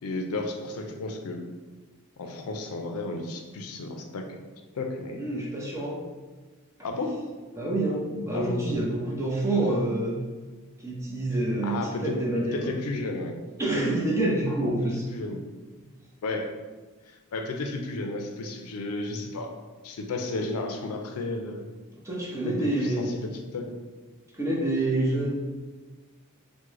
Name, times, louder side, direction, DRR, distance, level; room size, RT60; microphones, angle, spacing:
voice 1, 0.0-1.4 2.2-4.4 4.8-5.2 6.8-7.2 8.3-8.6 11.6-13.3 15.1-15.4 16.2-16.5 17.3-19.5 19.8-21.6 22.5-22.7 23.0-23.7, left 2 dB, 80° left, 4 dB, 0.4 m, -33 dB
voice 2, 5.1-6.1 7.5-10.2 10.8-12.7 13.6-15.0 22.0-23.2 24.3-25.3, right 1 dB, 15° right, -4 dB, 0.6 m, -27 dB
3.6 x 2.1 x 3.1 m, 1.3 s
head